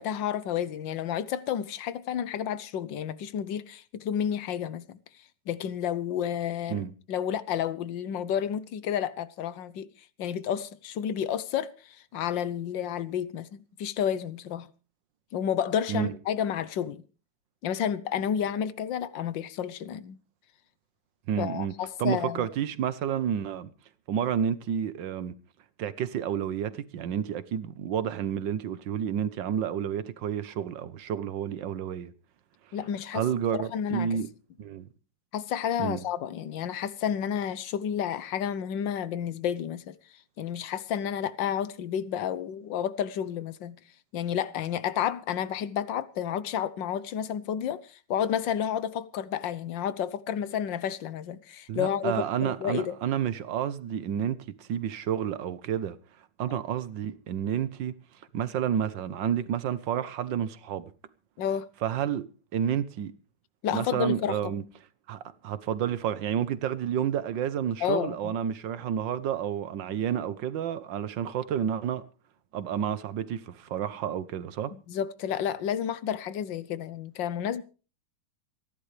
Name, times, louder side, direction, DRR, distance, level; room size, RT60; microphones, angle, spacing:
voice 1, 0.0-5.0 5.5-9.9 10.2-14.7 15.3-17.0 17.6-20.2 21.4-22.5 32.7-33.2 33.6-34.2 35.3-39.9 40.4-43.8 44.1-52.9 56.5-56.6 61.4-61.7 63.6-64.4 67.8-68.3 74.9-77.6, left 9 dB, 80° left, 1.6 m, -31 dB
voice 2, 21.3-21.7 22.0-23.7 24.1-25.3 25.8-32.1 33.1-34.3 34.6-34.9 35.8-36.0 51.7-56.0 56.4-57.9 58.3-60.9 61.8-63.1 63.7-64.6 65.1-72.0 72.5-74.7, right 9 dB, 80° right, 1.6 m, -30 dB
27.5 x 11.0 x 3.3 m
omnidirectional pair, 2.0 m